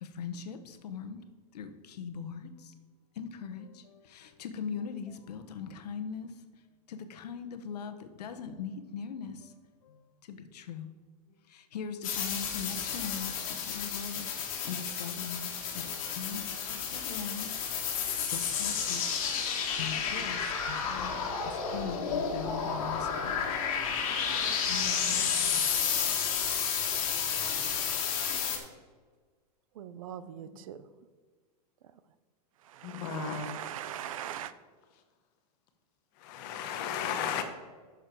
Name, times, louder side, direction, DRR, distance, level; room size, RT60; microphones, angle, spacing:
voice 1, 0.0-1.2 1.5-2.7 3.2-6.3 6.9-9.5 9.8-10.0 10.3-10.9 11.5-17.5 18.3-19.0 19.8-23.3 24.7-25.6 26.2-26.7, left 6 dB, 75° left, 1.1 m, -41 dB
sound 1, 12.0-28.6, left 6 dB, 55° left, 1.8 m, -31 dB
voice 2, 29.8-30.9 32.6-34.5, right 10 dB, 55° right, 0.6 m, -41 dB
voice 3, 32.8-33.5 36.3-37.4, left 7 dB, 30° left, 1.0 m, -34 dB
10.0 x 6.5 x 4.5 m
supercardioid pair, 175°, 20 cm